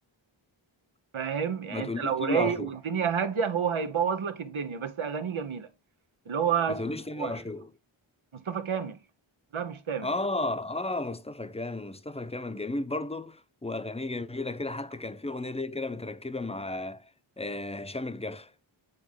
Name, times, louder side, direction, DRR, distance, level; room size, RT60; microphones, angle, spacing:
voice 1, 1.1-5.7 6.3-6.8 7.2-7.4 8.5-9.0 9.5-10.1, right 7 dB, 85° right, 1.0 m, -29 dB
voice 2, 1.7-2.7 6.7-7.7 10.0-17.1 17.4-18.5, left 2 dB, 15° left, 0.7 m, -33 dB
8.4 x 3.6 x 3.7 m
wide cardioid pair, 50°, 48 cm